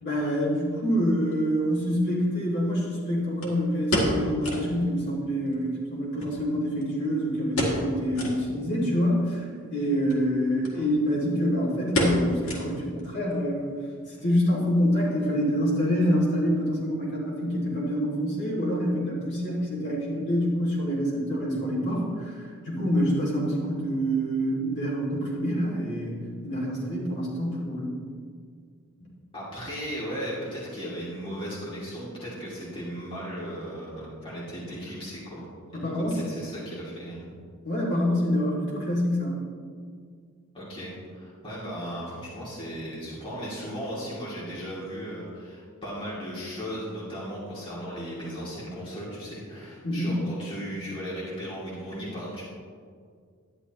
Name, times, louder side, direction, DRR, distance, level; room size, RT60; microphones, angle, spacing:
voice 1, 0.0-13.7 14.1-26.2 26.4-27.9 35.7-36.2 37.6-39.4 49.8-50.2, equal, 50° left, -5 dB, 2.6 m, -26 dB
sound 1, 1.3-1.4 3.4-4.8 5.1-5.2 5.5-5.6 6.2-7.1 7.5-7.9 8.1-8.4 8.9-9.0 10.0-10.2 10.6-10.8 11.0-11.4 11.9-13.0 13.3-13.4 14.0-14.3 14.6-14.7, equal, 75° left, 2.0 m, -28 dB
voice 2, 29.3-35.4 35.7-37.3 40.5-52.5, equal, 25° left, -8 dB, 2.5 m, -36 dB
11.0 x 10.0 x 3.0 m, 2.1 s
head